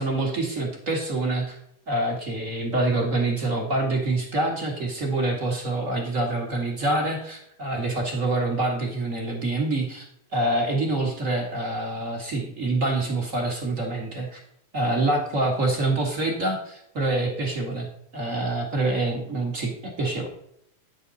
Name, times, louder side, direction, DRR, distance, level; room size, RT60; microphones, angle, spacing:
voice 1, 0.0-1.6 1.9-10.0 10.3-14.4 14.7-17.8 18.1-20.3, right 2 dB, 35° right, 0 dB, 1.5 m, -26 dB
10.0 x 8.0 x 4.1 m, 0.73 s
omnidirectional pair, 3.7 m